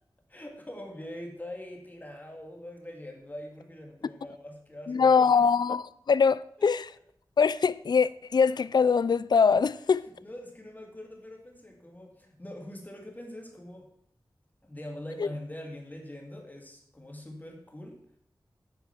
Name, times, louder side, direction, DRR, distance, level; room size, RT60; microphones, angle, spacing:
voice 1, 0.3-5.5 10.2-13.9 14.6-18.0, left 1 dB, 20° left, 2.4 m, -43 dB
voice 2, 4.9-6.9 7.4-10.1 15.2-15.3, left 5 dB, 60° left, 0.4 m, -23 dB
9.2 x 9.1 x 6.0 m
wide cardioid pair, 80°, 8 cm